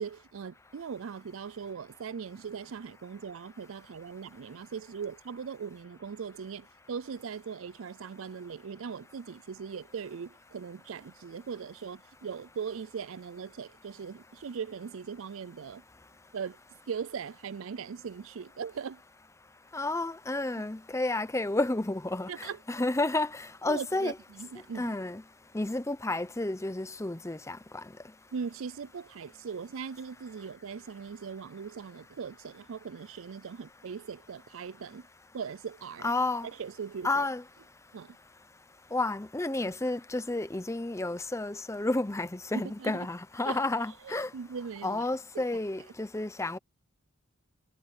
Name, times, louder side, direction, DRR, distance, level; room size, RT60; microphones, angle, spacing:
voice 1, 0.0-15.8 16.3-16.6 16.9-19.0 22.3-22.6 23.7-24.9 28.3-35.1 35.3-36.1 36.4-37.3 37.9-38.2 42.5-43.1 43.5-43.6 44.0-45.0 45.3-45.4, right 6 dB, 65° right, 0.4 m, -40 dB
voice 2, 19.7-24.1 24.8-25.2 25.5-27.6 36.0-36.5 37.0-37.4 38.9-44.3 44.8-46.6, left 2 dB, 15° left, 0.7 m, -31 dB
head